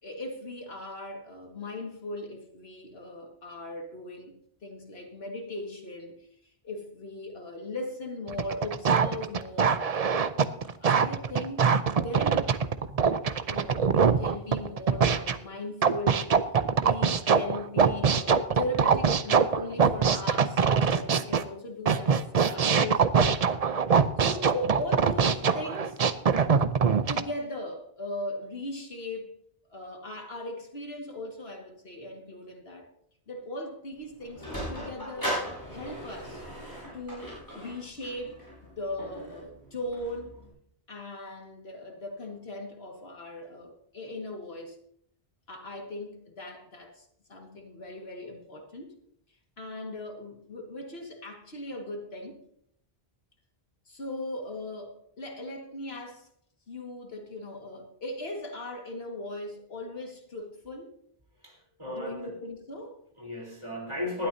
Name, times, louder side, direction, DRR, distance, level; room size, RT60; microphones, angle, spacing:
voice 1, 0.0-9.8 10.6-11.7 12.0-12.5 13.5-23.1 24.2-26.0 27.1-29.4 29.7-32.9 33.3-35.4 35.7-36.4 36.9-38.4 38.8-40.4 40.9-44.8 45.5-48.9 49.6-52.4 53.9-56.3 56.7-60.9 62.0-63.0, left 1 dB, 70° left, 2.1 m, -38 dB
sound 1, 8.3-15.4 15.8-21.4 21.9-27.2, right 6 dB, 45° right, 0.6 m, -23 dB
Sliding door, 33.9-40.5, equal, 20° left, 6.8 m, -38 dB
voice 2, 61.4-62.3 63.2-64.3, left 2 dB, 25° right, 3.8 m, -35 dB
19.5 x 12.5 x 2.8 m
omnidirectional pair, 1.1 m